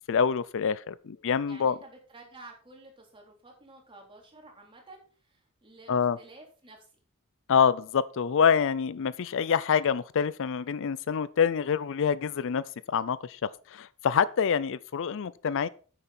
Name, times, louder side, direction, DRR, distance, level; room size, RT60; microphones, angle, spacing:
voice 1, 0.1-1.7 5.9-6.2 7.5-15.7, left 7 dB, 60° left, 0.4 m, -26 dB
voice 2, 1.4-7.0, right 2 dB, 25° right, 3.5 m, -52 dB
9.9 x 9.1 x 4.2 m
head